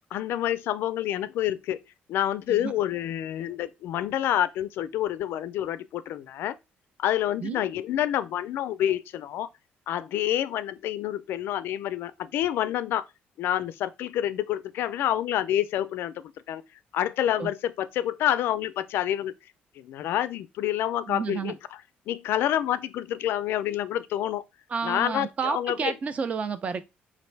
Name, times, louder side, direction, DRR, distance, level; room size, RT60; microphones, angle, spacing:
voice 1, 0.1-1.8 2.1-6.5 7.0-9.5 9.9-13.0 13.4-16.6 16.9-19.3 19.8-21.6 22.1-24.4 24.8-26.0, left 11 dB, 75° left, 0.3 m, -28 dB
voice 2, 21.1-21.5 24.7-26.8, right 5 dB, 35° right, 0.5 m, -30 dB
5.2 x 2.5 x 3.2 m
cardioid pair, 135°, 4 cm